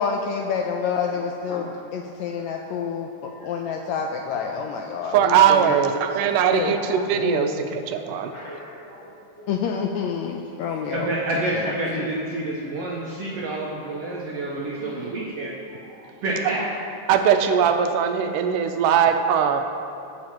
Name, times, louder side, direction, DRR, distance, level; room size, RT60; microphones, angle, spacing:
voice 1, 0.0-1.6 1.9-5.8 6.5-6.8 7.2-7.7 9.5-11.1 11.5-12.1, left 6 dB, 90° left, 2 dB, 1.6 m, -28 dB
voice 2, 1.5-1.8 2.1-3.7 6.0-7.1 8.1-9.5 14.2-14.3 15.7-16.1, left 1 dB, 50° left, -9 dB, 4.0 m, -44 dB
voice 3, 5.1-8.3 16.4-16.5 17.1-19.6, right 8 dB, 85° right, 6 dB, 2.1 m, -20 dB
voice 4, 10.9-15.6 16.2-16.7, right 2 dB, 70° right, -4 dB, 1.6 m, -28 dB
19.5 x 7.5 x 3.0 m, 2.6 s
omnidirectional pair, 3.7 m